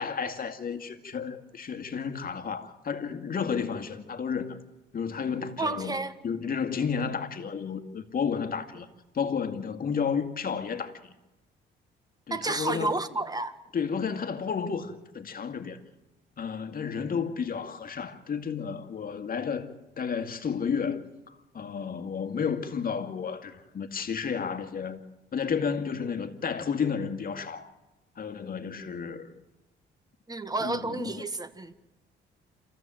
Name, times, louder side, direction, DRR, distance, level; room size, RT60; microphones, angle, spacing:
voice 1, 0.0-4.6 4.9-5.9 6.2-8.9 9.1-11.1 12.3-12.9 13.7-15.8 16.4-19.7 20.0-25.0 25.3-27.7 28.2-29.3 30.6-31.1, left 6 dB, 45° left, 2.0 m, -32 dB
voice 2, 5.6-6.2 12.3-13.6 30.3-31.7, right 2 dB, 20° right, 1.6 m, -31 dB
27.0 x 15.0 x 7.7 m
cardioid pair, 90°, 20 cm